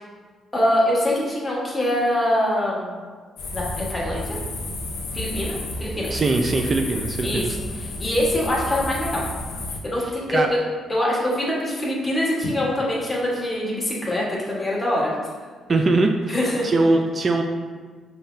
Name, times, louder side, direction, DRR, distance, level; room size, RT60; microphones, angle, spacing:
voice 1, 0.5-3.0 3.5-4.4 5.1-6.2 7.2-7.5 8.0-9.2 9.8-10.6 10.9-15.1 16.3-16.7, left 1 dB, 15° left, -4 dB, 1.4 m, -24 dB
sound 1, 3.4-9.8, left 1 dB, 80° left, 0.8 m, -31 dB
voice 2, 6.1-7.6 10.0-10.5 15.7-17.4, right 2 dB, 40° right, 3 dB, 0.4 m, -22 dB
5.7 x 2.8 x 3.3 m, 1.5 s
cardioid pair, 90°, 0 cm